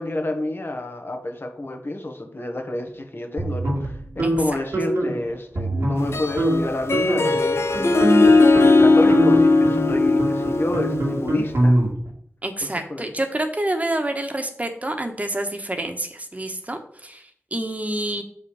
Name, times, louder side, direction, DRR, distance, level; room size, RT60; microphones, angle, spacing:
voice 1, 0.0-7.9 8.5-11.8 12.9-13.0, left 1 dB, 55° left, 4 dB, 1.6 m, -29 dB
sound 1, 3.4-4.4 4.7-5.2 5.6-6.1 6.4-6.6 6.9-7.4 7.7-12.1, right 1 dB, 85° right, 2.3 m, -23 dB
Harp, 6.0-11.5, left 3 dB, 70° left, 0.9 m, -18 dB
voice 2, 12.4-18.2, right 1 dB, 30° right, 6 dB, 1.4 m, -28 dB
7.2 x 5.2 x 4.9 m, 0.63 s
cardioid pair, 40°, 5 cm